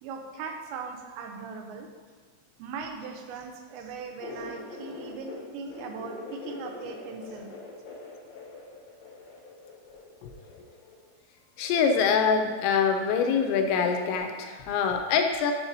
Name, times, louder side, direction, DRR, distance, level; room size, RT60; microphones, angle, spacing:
voice 1, 0.0-1.9 2.6-7.5, right 5 dB, 80° right, 4 dB, 2.8 m, -39 dB
sound 1, 4.2-5.4 5.6-11.1 12.2-12.7 13.0-14.2, left 3 dB, 65° left, 1.8 m, -44 dB
voice 2, 11.6-15.5, left 6 dB, 85° left, 5 dB, 2.9 m, -24 dB
7.9 x 7.2 x 2.7 m, 1.5 s
omnidirectional pair, 5.2 m